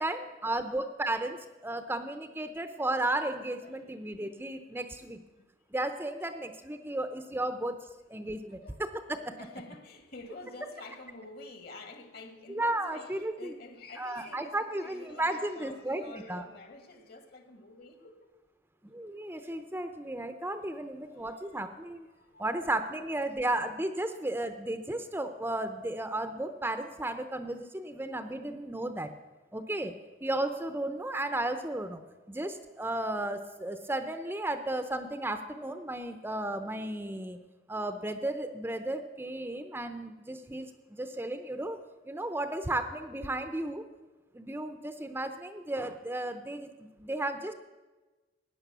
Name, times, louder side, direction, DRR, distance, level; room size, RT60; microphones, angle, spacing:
voice 1, 0.0-5.2 5.7-7.8 8.1-9.3 12.5-13.5 14.0-16.0 16.3-16.4 18.9-22.1 22.4-29.2 29.5-29.9 30.2-32.0 32.3-37.4 37.7-41.8 42.1-43.8 44.3-47.5, right 1 dB, 10° right, 0.7 m, -34 dB
voice 2, 3.6-4.7 5.4-5.5 6.2-6.4 7.3-7.5 8.2-8.8 9.4-18.3 21.1-21.7 22.1-22.7 23.2-23.3 24.0-24.2, left 2 dB, 55° left, 1.9 m, -49 dB
16.0 x 10.0 x 6.8 m
head